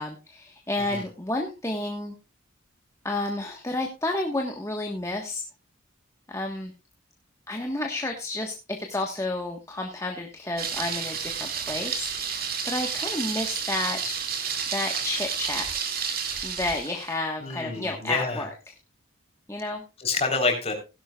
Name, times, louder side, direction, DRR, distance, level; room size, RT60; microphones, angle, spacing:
voice 1, 0.0-2.1 3.0-5.4 6.3-6.7 7.5-14.1 14.7-15.8 16.4-18.5 19.5-19.8, left 2 dB, 15° left, 2 dB, 1.3 m, -31 dB
Thunder, 10.6-17.2, right 6 dB, 45° right, 2.4 m, -31 dB
voice 2, 17.4-18.5 20.0-20.7, left 3 dB, 30° left, 4 dB, 3.8 m, -27 dB
17.0 x 11.0 x 2.4 m, 0.28 s
head